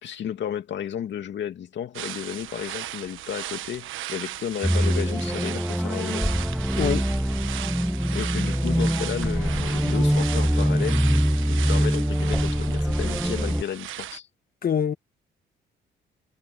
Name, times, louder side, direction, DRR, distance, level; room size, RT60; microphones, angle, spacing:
voice 1, 0.0-6.3 8.1-11.1 11.5-14.3, left 9 dB, 65° left, 2.5 m, -33 dB
sound 1, 1.9-14.2, right 13 dB, 85° right, 1.2 m, -36 dB
sound 2, 4.6-13.6, equal, ahead, 0.9 m, -23 dB
voice 2, 14.6-14.9, left 7 dB, 50° left, 1.5 m, -24 dB
cardioid pair, 90°, 20 cm